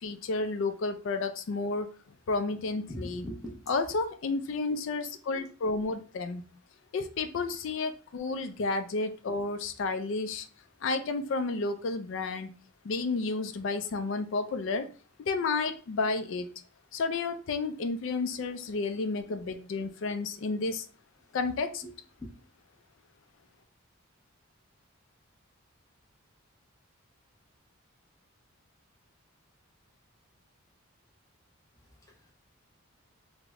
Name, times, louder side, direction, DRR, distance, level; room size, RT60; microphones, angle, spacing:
voice 1, 0.0-1.9 2.3-3.2 3.7-6.4 6.9-10.5 10.8-12.5 12.8-14.9 15.2-16.5 16.9-20.9 21.3-21.8, left 3 dB, 60° left, 8 dB, 0.3 m, -31 dB
voice 2, 2.9-4.0 21.8-22.3 31.8-32.3, equal, 15° left, -2 dB, 0.7 m, -43 dB
3.3 x 2.0 x 3.5 m, 0.37 s
head